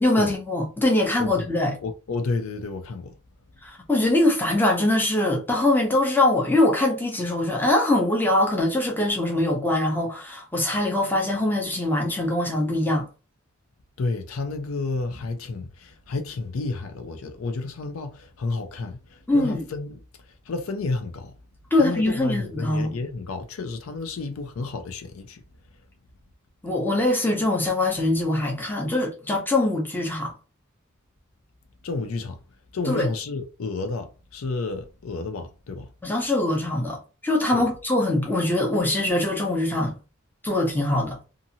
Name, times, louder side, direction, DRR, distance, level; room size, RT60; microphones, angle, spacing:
voice 1, 0.0-1.8 3.6-13.1 19.3-19.6 21.7-22.9 26.6-30.3 32.9-33.1 36.0-40.0 40.4-41.2, left 1 dB, 10° left, 0.8 m, -23 dB
voice 2, 1.8-3.2 14.0-19.9 20.5-21.3 21.8-25.4 31.8-32.4 32.7-35.9 37.5-37.6, left 3 dB, 80° left, 0.5 m, -31 dB
2.6 x 2.5 x 2.7 m
head